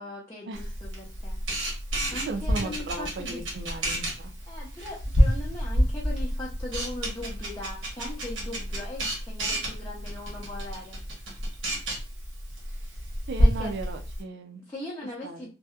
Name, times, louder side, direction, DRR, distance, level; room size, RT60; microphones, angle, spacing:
voice 1, 0.0-1.4 2.1-3.5 4.5-11.0 13.4-13.7 14.7-15.5, left 1 dB, 15° left, -6 dB, 0.6 m, -39 dB
Camera, 0.5-14.2, equal, 90° right, 1.0 m, -29 dB
voice 2, 2.3-4.3 13.3-14.6 15.2-15.5, right 3 dB, 60° right, 7 dB, 0.4 m, -36 dB
2.6 x 2.1 x 2.3 m, 0.32 s
head